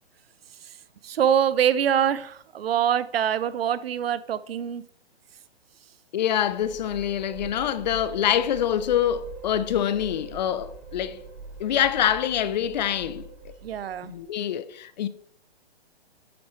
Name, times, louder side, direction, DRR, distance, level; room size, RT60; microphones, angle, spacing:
voice 1, 1.0-4.8 13.6-14.1, right 9 dB, 65° right, 0.6 m, -24 dB
voice 2, 6.1-11.2 11.6-13.2 14.0-15.1, left 10 dB, 45° left, 0.6 m, -25 dB
sound 1, 6.4-14.2, right 4 dB, 5° right, 2.5 m, -43 dB
8.5 x 8.4 x 3.1 m
hypercardioid pair, 140°, 32 cm